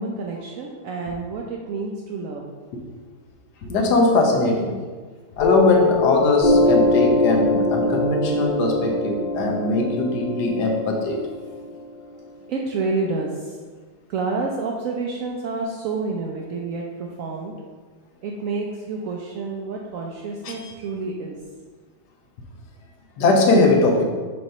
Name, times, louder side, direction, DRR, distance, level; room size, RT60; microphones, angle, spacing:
voice 1, 0.0-2.5 12.5-13.6 14.1-17.5 18.2-21.4, right 3 dB, 80° right, 0 dB, 0.7 m, -29 dB
voice 2, 3.6-4.8 5.4-11.2 20.4-20.7 23.2-24.0, left 2 dB, 65° left, 1 dB, 1.4 m, -20 dB
Piano, 5.4-12.5, left 3 dB, 40° left, 0.8 m, -22 dB
6.5 x 3.0 x 5.4 m, 1.5 s
omnidirectional pair, 2.0 m